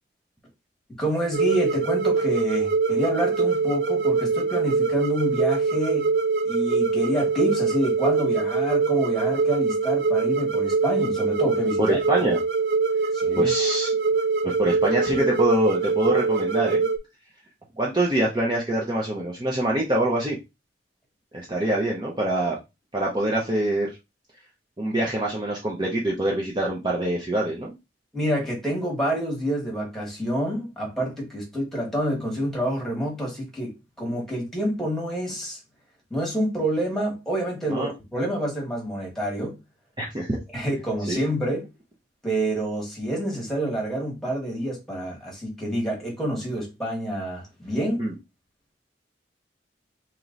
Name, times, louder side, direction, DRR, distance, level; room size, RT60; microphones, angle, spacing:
voice 1, 1.0-6.1 6.4-12.0 13.1-13.5 28.1-35.6 36.1-39.6 40.5-41.7 42.2-48.0, right 1 dB, ahead, 1.6 m, -28 dB
sound 1, 1.3-17.0, right 4 dB, 65° right, 0.5 m, -23 dB
voice 2, 11.8-12.4 13.4-13.9 14.4-16.9 17.8-20.4 21.3-22.6 22.9-23.9 24.8-27.7 37.7-37.9 40.0-40.4 41.1-41.2 48.0-48.1, right 1 dB, 25° right, 0.7 m, -25 dB
3.1 x 3.0 x 3.8 m
head